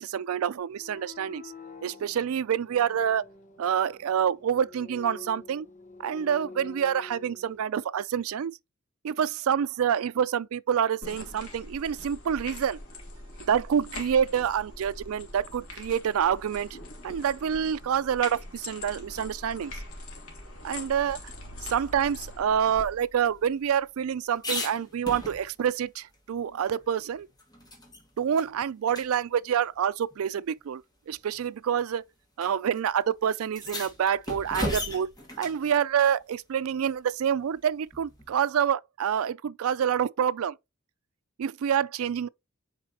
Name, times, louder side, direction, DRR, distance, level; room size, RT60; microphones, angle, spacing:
voice 1, 0.0-1.5 1.8-3.3 3.6-5.7 6.0-8.6 9.0-12.8 13.5-16.7 17.0-19.8 20.6-21.3 21.6-27.3 28.2-32.1 32.4-35.1 35.4-40.6 41.4-42.3, right 8 dB, 85° right, 0.4 m, -27 dB
sound 1, 0.7-7.7, left 3 dB, 35° left, 0.8 m, -47 dB
sound 2, 11.0-22.9, left 2 dB, 80° left, 2.5 m, -43 dB
sound 3, 22.8-25.8 26.1-26.2 26.6-28.0 28.4-28.5 28.9-29.1 30.1-30.2 31.1-31.4 32.4-32.5 32.8-32.9 33.4-35.6 37.9-38.3, left 1 dB, 20° left, 2.0 m, -37 dB
7.4 x 4.8 x 2.9 m
head